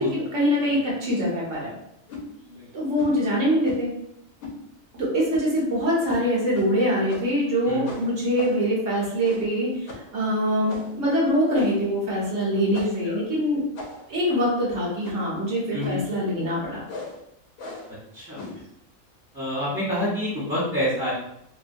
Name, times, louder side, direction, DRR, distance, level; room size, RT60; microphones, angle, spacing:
voice 1, 0.0-1.7 2.7-3.9 5.0-13.6 14.1-16.8, equal, 65° right, -5 dB, 1.3 m, -24 dB
sound 1, 2.1-2.3 3.0-3.2 3.6-3.9 4.4-4.6 5.3-5.6 6.1-6.2 6.5-6.7 7.1-7.4 7.8-8.7 9.2-9.6 9.9-10.1 10.7-11.0 11.5-11.9 12.7-13.1 13.7-14.2 15.0-15.3 15.8-16.1 16.9-17.2 17.6-17.9 18.3-18.7, left 3 dB, 80° left, 1.0 m, -39 dB
voice 2, 7.6-8.0 13.0-13.2 15.7-16.0 18.1-18.4 19.3-21.1, equal, 15° right, -11 dB, 0.5 m, -28 dB
3.0 x 2.1 x 2.5 m, 0.76 s
omnidirectional pair, 1.4 m